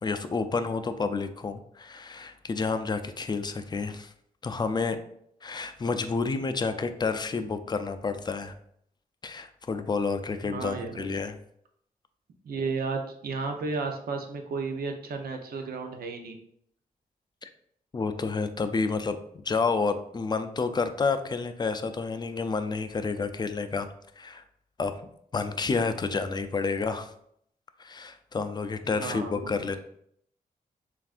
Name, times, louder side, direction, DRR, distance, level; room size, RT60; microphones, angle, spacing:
voice 1, 0.0-4.1 4.4-5.0 5.4-8.5 9.2-11.4 17.4-17.5 17.9-19.2 19.4-23.9 24.2-24.4 24.8-24.9 25.3-27.1 27.8-29.8, left 4 dB, 30° left, 9 dB, 0.4 m, -29 dB
voice 2, 10.4-11.1 12.4-16.4 28.9-29.8, right 4 dB, 80° right, 4 dB, 0.7 m, -33 dB
7.0 x 2.5 x 2.4 m, 0.70 s
cardioid pair, 100°, 15 cm